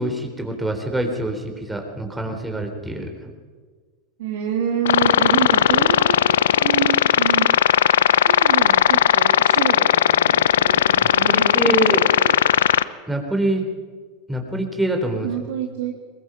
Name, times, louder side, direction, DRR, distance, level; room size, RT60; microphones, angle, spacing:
voice 1, 0.0-3.1 11.0-12.0 13.1-13.6 14.3-15.3, right 1 dB, 10° right, 3 dB, 3.8 m, -25 dB
voice 2, 4.2-7.5 8.2-12.4 15.2-15.9, right 8 dB, 70° right, 1 dB, 2.3 m, -27 dB
sound 1, 4.9-12.8, left 10 dB, 75° left, 0.6 m, -17 dB
22.0 x 20.5 x 5.9 m, 1.5 s
hypercardioid pair, 90°, 0 cm